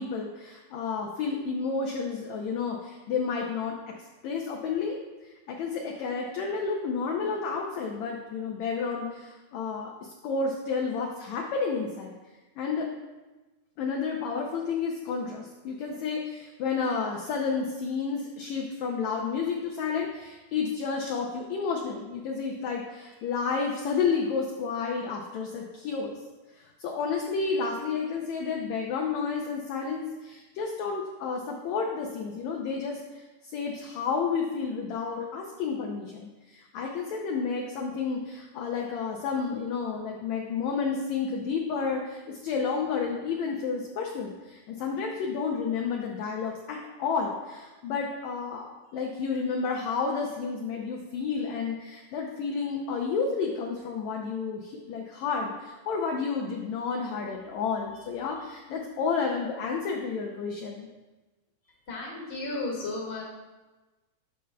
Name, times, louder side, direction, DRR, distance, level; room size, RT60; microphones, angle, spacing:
voice 1, 0.0-3.7 4.2-5.0 5.2-12.1 12.6-12.9 13.8-26.2 26.5-60.9, left 5 dB, 80° left, 0 dB, 1.6 m, -31 dB
voice 2, 61.9-63.2, left 2 dB, 25° left, -3 dB, 1.4 m, -33 dB
9.9 x 6.6 x 2.2 m, 1.2 s
omnidirectional pair, 3.9 m